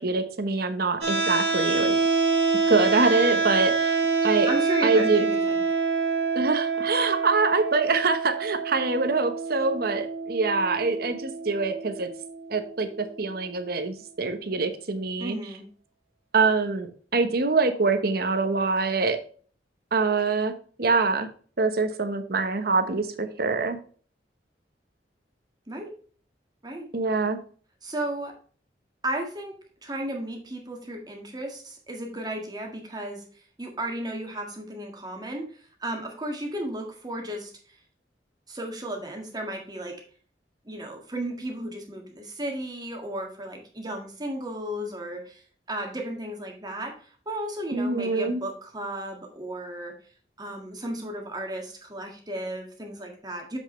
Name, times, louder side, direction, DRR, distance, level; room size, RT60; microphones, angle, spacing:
voice 1, 0.0-2.0 2.7-4.5 4.8-5.3 6.3-12.1 12.5-12.9 13.2-15.3 16.3-19.2 19.9-20.5 20.8-21.3 21.6-23.8 26.9-27.4 47.7-48.4, right 3 dB, 60° right, 8 dB, 1.1 m, -24 dB
sound 1, 1.0-13.0, right 4 dB, 80° right, 2.3 m, -26 dB
voice 2, 4.5-5.6 15.2-15.7 25.7-25.9 26.6-26.9 27.8-28.3 29.0-29.5 29.8-33.2 33.6-37.5 38.5-40.0 40.7-45.4 45.7-49.9 50.4-53.6, right 1 dB, 25° right, 2 dB, 1.7 m, -34 dB
7.4 x 6.6 x 3.1 m, 0.43 s
head